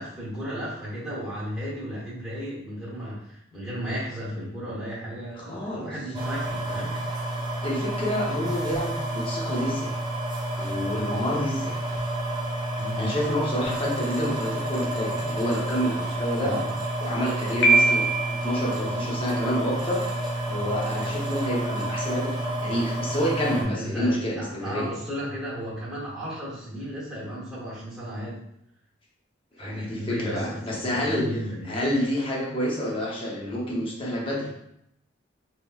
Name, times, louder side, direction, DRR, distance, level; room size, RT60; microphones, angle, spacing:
voice 1, 0.0-7.0 12.8-13.1 16.4-16.7 23.5-28.4 29.6-31.8, equal, ahead, -9 dB, 0.9 m, -34 dB
voice 2, 5.4-5.9 7.6-9.9 10.6-11.7 13.0-16.5 17.0-20.0 20.5-24.9 29.6-31.3 31.7-34.5, equal, 30° left, -3 dB, 0.7 m, -28 dB
sound 1, 6.1-23.6, right 1 dB, 20° right, 0.5 m, -30 dB
Piano, 17.6-18.6, right 3 dB, 70° left, 0.6 m, -20 dB
2.9 x 2.7 x 2.3 m, 0.77 s
head